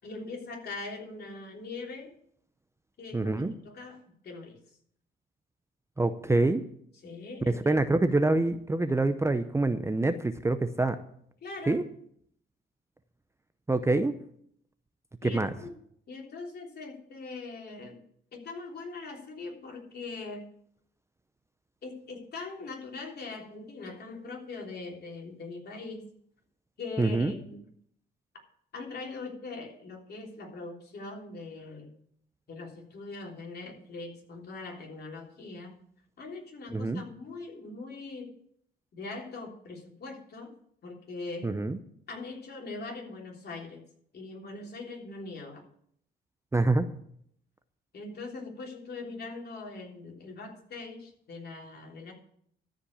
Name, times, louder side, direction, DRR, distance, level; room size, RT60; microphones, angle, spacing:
voice 1, 0.0-2.1 3.0-4.6 7.0-8.0 11.4-11.8 15.2-15.7 16.1-18.0 18.3-20.5 21.8-26.1 26.8-27.6 28.7-31.9 32.5-35.8 36.2-38.3 38.9-40.5 40.8-41.6 42.1-43.8 44.1-45.6 47.9-52.1, left 3 dB, 55° left, 0 dB, 3.5 m, -41 dB
voice 2, 3.1-3.5 6.0-6.6 7.7-11.0 11.7-11.8 13.7-14.1 15.2-15.5 27.0-27.3 36.7-37.0 41.4-41.8 46.5-46.9, right 2 dB, 15° right, 10 dB, 0.7 m, -26 dB
13.0 x 5.2 x 8.4 m, 0.67 s
cardioid pair, 90°, 20 cm